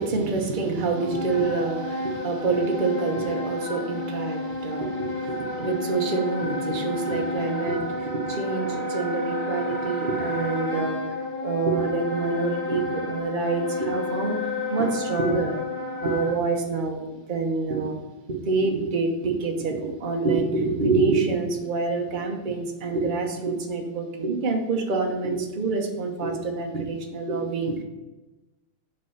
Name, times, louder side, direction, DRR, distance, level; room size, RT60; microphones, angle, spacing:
voice 1, 0.0-11.0 11.4-14.4 14.7-15.6 16.0-18.0 18.3-27.8, right 3 dB, 40° right, 2 dB, 0.7 m, -26 dB
Wind instrument woodwind instrument, 0.9-16.4, left 2 dB, 50° left, 2.3 m, -31 dB
7.7 x 5.2 x 5.7 m, 1.1 s
omnidirectional pair, 2.3 m